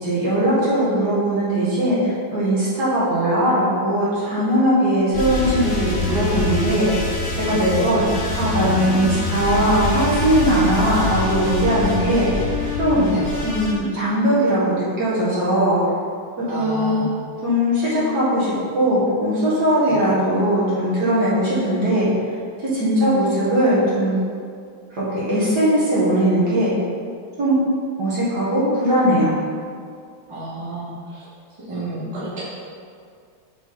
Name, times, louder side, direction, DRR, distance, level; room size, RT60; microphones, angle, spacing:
voice 1, 0.0-8.0 8.4-12.4 12.8-13.1 13.4-15.8 16.5-17.1 17.4-22.1 22.7-24.2 25.0-26.7 27.4-27.6 28.0-29.3, right 1 dB, 50° right, -9 dB, 2.3 m, -19 dB
sound 1, 5.1-13.7, left 3 dB, 80° left, 2.7 m, -25 dB
voice 2, 16.5-17.1 19.8-20.0 30.3-31.3 31.6-32.4, right 2 dB, 15° right, -10 dB, 1.7 m, -31 dB
5.9 x 5.7 x 4.2 m, 2.2 s
omnidirectional pair, 2.3 m